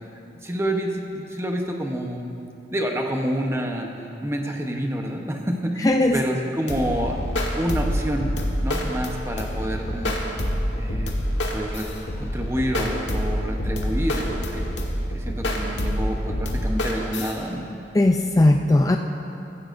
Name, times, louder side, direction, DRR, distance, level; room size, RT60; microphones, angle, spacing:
voice 1, 0.4-2.3 2.7-3.9 4.2-7.1 7.6-8.3 8.6-10.2 10.8-11.1 11.5-11.9 12.2-14.7 15.1-17.6, equal, 15° right, 2 dB, 0.9 m, -28 dB
voice 2, 5.8-6.2 17.9-19.0, left 2 dB, 20° left, 3 dB, 0.4 m, -18 dB
sound 1, 6.7-17.3, equal, 85° left, 1.4 m, -26 dB
15.5 x 14.5 x 2.6 m, 2.7 s
head